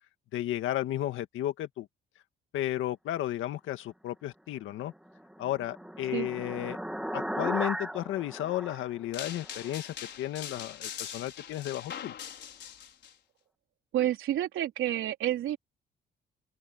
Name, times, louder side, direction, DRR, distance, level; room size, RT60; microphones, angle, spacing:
voice 1, 0.3-1.9 2.5-4.9 5.4-6.8 7.1-12.1, left 13 dB, 85° left, 1.9 m, -33 dB
sound 1, 5.0-9.7, equal, 5° right, 2.7 m, -37 dB
sound 2, 9.1-13.1, left 9 dB, 65° left, 5.6 m, -42 dB
voice 2, 13.9-15.6, right 12 dB, 80° right, 4.2 m, -29 dB
open air
cardioid pair, 90°, 20 cm